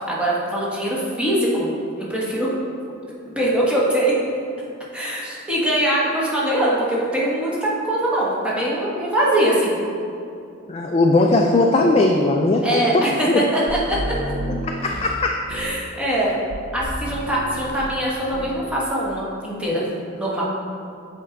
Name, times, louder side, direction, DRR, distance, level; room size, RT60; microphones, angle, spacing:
voice 1, 0.1-1.7 2.0-2.5 3.4-4.2 4.9-9.8 12.6-14.0 14.2-14.3 15.5-16.4 16.7-19.8 20.2-20.4, right 1 dB, 5° right, -6 dB, 1.2 m, -22 dB
voice 2, 10.7-13.0 13.3-13.4 14.8-15.3, left 2 dB, 30° left, 1 dB, 0.3 m, -18 dB
sound 1, 13.7-15.8 16.5-18.1 18.3-18.7, right 1 dB, 50° right, 0.6 m, -31 dB
7.5 x 4.5 x 3.8 m, 2.6 s
head